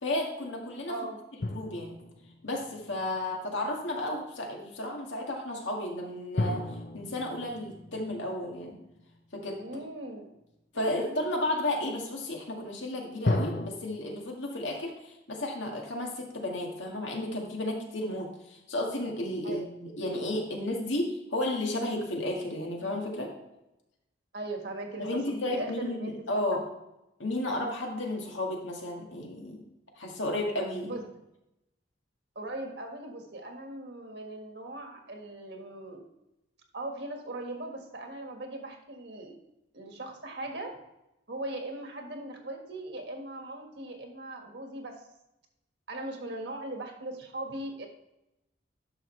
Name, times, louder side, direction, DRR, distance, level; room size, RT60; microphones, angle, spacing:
voice 1, 0.0-1.0 1.5-2.0 2.4-6.6 6.9-8.7 9.3-9.6 10.7-23.3 25.0-26.6 27.2-29.6 30.0-30.9, left 1 dB, 80° left, 0 dB, 1.9 m, -33 dB
sound 1, 1.4-3.4 6.4-9.6 13.2-13.7, left 2 dB, 50° left, 0.6 m, -34 dB
voice 2, 9.6-10.3 10.7-11.2 19.4-19.7 24.3-26.6 30.8-31.0 32.3-36.0 36.7-39.4 39.7-40.8 41.3-45.0 45.9-47.9, right 1 dB, 60° right, 3 dB, 1.6 m, -39 dB
11.0 x 6.3 x 3.3 m, 0.90 s
head